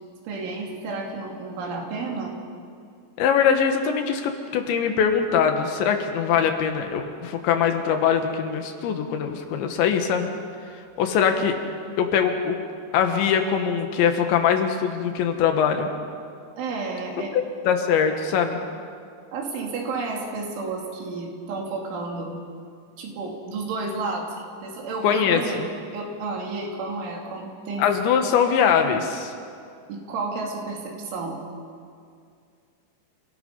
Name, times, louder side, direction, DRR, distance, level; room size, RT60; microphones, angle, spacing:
voice 1, 0.3-2.4 16.6-17.4 19.3-22.3 23.0-24.3 24.6-27.9 29.9-31.4, right 3 dB, 85° right, 0 dB, 5.2 m, -31 dB
voice 2, 3.2-10.3 11.0-11.6 12.0-12.6 12.9-15.9 17.3-18.6 25.0-25.7 27.8-29.3, left 7 dB, 75° left, 6 dB, 3.6 m, -22 dB
28.5 x 17.5 x 5.5 m, 2.3 s
omnidirectional pair, 5.4 m